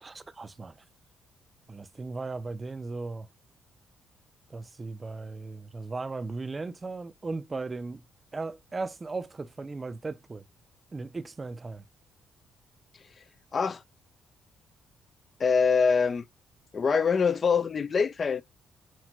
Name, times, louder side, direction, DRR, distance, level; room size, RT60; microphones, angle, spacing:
voice 1, 0.0-0.8 1.7-3.3 4.5-8.0 8.3-10.4 10.9-11.8, right 3 dB, 25° right, 0.4 m, -37 dB
voice 2, 15.4-16.2 16.7-18.4, left 5 dB, 40° left, 0.3 m, -24 dB
5.8 x 2.2 x 3.0 m
cardioid pair, 90°, 0 cm